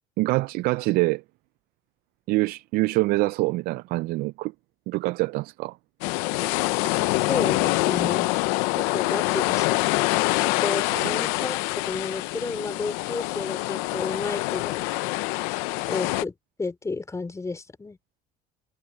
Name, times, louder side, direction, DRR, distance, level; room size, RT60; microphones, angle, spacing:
voice 1, 0.2-1.2 2.3-4.5 4.9-5.8 6.4-6.6 10.9-11.2, right 21 dB, 70° right, 0.4 m, -25 dB
sound 1, 6.0-16.2, left 22 dB, 90° left, 0.7 m, -25 dB
voice 2, 7.3-8.3 8.8-11.6 11.9-14.9 15.9-18.0, left 3 dB, 20° left, 4.8 m, -32 dB
cardioid pair, 110°, 16 cm